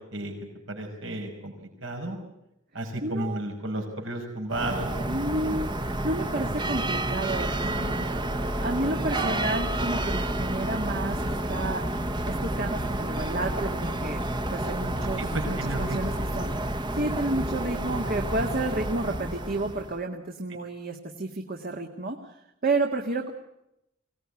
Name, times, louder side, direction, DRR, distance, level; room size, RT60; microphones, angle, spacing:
voice 1, 0.7-1.5 1.8-2.2 2.7-5.1 5.5-5.6 15.2-16.3, right 1 dB, 70° right, 2 dB, 5.2 m, -33 dB
voice 2, 3.0-3.4 5.1-8.0 8.6-11.8 12.3-14.2 14.5-16.5 16.9-23.3, right 2 dB, 45° right, 3 dB, 1.9 m, -31 dB
sound 1, 4.5-20.0, right 1 dB, 25° right, 1.2 m, -30 dB
24.0 x 18.5 x 9.7 m, 0.85 s
head